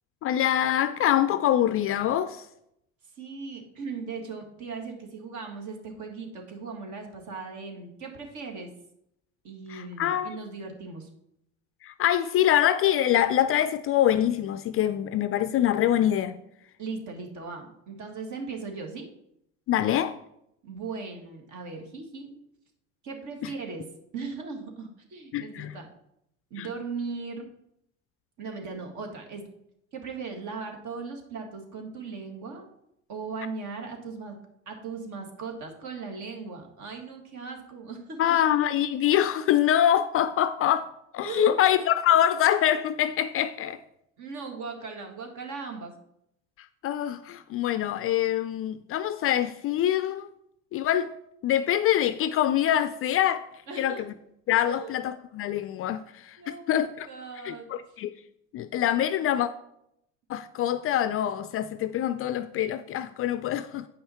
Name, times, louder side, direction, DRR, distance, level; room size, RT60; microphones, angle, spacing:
voice 1, 0.2-2.5 9.7-10.4 11.8-16.4 19.7-20.2 23.4-23.5 25.3-25.8 26.6-26.7 38.2-40.9 41.1-43.8 46.8-50.3 50.7-51.1 51.4-53.5 53.8-54.1 54.5-57.1 57.4-58.1 58.5-59.5 60.3-63.9, left 11 dB, 35° left, 0.4 m, -25 dB
voice 2, 3.2-8.7 9.4-11.1 16.8-19.1 20.6-22.3 23.0-23.8 24.1-25.9 26.5-27.5 28.4-29.5 29.9-32.7 33.1-34.4 34.7-38.2 41.2-41.6 44.2-45.9 53.7-54.0 54.7-54.9 56.4-58.0, right 4 dB, 50° right, 1.9 m, -38 dB
8.5 x 5.5 x 4.3 m
hypercardioid pair, 75°, 38 cm